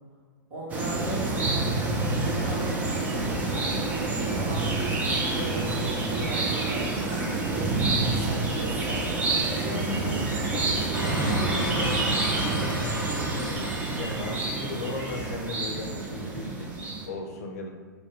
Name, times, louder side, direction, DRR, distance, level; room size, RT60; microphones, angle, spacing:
voice 1, 0.5-1.7 2.2-3.8 4.3-6.9 7.4-9.1 9.6-10.3 10.9-13.7, right 1 dB, 45° right, -5 dB, 1.0 m, -37 dB
sound 1, 0.7-17.1, right 3 dB, 15° right, 0.3 m, -28 dB
sound 2, 2.7-8.4, right 1 dB, 20° left, 1.0 m, -41 dB
sound 3, 10.9-15.0, equal, 90° right, 0.7 m, -34 dB
voice 2, 14.0-17.7, left 2 dB, 50° left, 2 dB, 0.5 m, -36 dB
2.2 x 2.1 x 3.6 m, 1.4 s
figure-of-eight pair, 105°, 11 cm